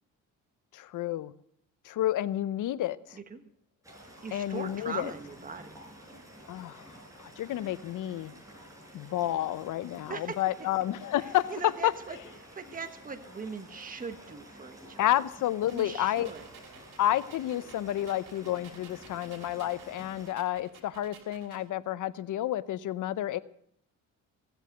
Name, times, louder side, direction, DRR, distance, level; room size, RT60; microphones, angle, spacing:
voice 1, 0.7-1.3 1.8-3.2 4.3-5.1 6.5-6.9 7.2-8.3 8.9-11.5 11.8-11.9 15.0-16.3 17.0-23.4, left 13 dB, 65° left, 17 dB, 0.8 m, -30 dB
voice 2, 3.1-3.5 4.2-5.7 10.1-10.4 11.2-12.2 12.5-15.1 15.7-16.5, right 5 dB, 25° right, 8 dB, 1.3 m, -40 dB
sound 1, 3.8-20.3, equal, 10° right, 6.0 m, -51 dB
sound 2, 15.7-21.7, right 6 dB, 80° right, 3.1 m, -55 dB
17.0 x 8.2 x 7.8 m, 0.67 s
cardioid pair, 100°, 33 cm